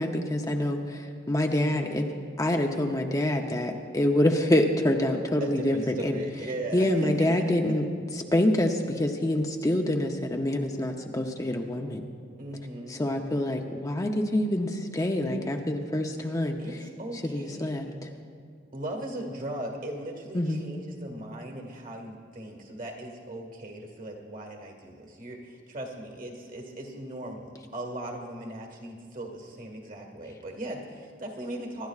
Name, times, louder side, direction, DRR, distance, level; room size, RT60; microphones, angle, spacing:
voice 1, 0.0-2.0 2.4-6.2 6.7-7.9 8.1-12.0 12.9-16.6 17.2-18.1 20.3-20.7, left 1 dB, 20° left, 3 dB, 0.6 m, -26 dB
voice 2, 1.5-1.8 5.4-7.1 7.4-7.5 12.4-13.0 16.6-17.9 18.7-31.9, right 1 dB, 50° right, 2 dB, 1.8 m, -38 dB
25.0 x 11.5 x 2.4 m, 2.2 s
head